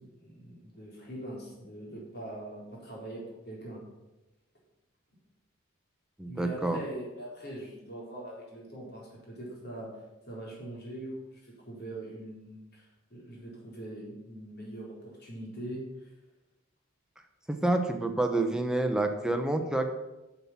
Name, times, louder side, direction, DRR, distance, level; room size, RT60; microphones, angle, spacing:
voice 1, 0.0-3.8 6.2-9.9 10.3-16.1, right 1 dB, 50° left, -4 dB, 4.1 m, -42 dB
voice 2, 6.2-6.8 17.5-19.9, right 2 dB, 5° right, 5 dB, 0.9 m, -28 dB
7.8 x 7.3 x 7.3 m, 1.0 s
head